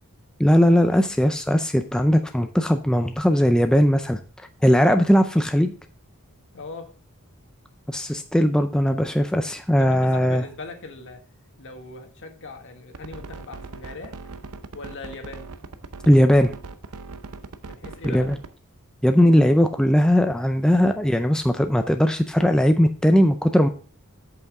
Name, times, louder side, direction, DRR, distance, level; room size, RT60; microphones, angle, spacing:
voice 1, 0.4-4.2 4.6-5.7 7.9-10.4 16.1-16.5 18.0-18.4 19.0-23.7, equal, 5° left, 0.4 m, -19 dB
voice 2, 6.5-6.9 9.8-11.2 11.6-14.2 14.7-15.5 17.7-18.3, left 3 dB, 60° left, 1.5 m, -39 dB
sound 1, 12.9-18.5, right 4 dB, 80° right, 0.7 m, -39 dB
8.1 x 7.1 x 3.5 m
head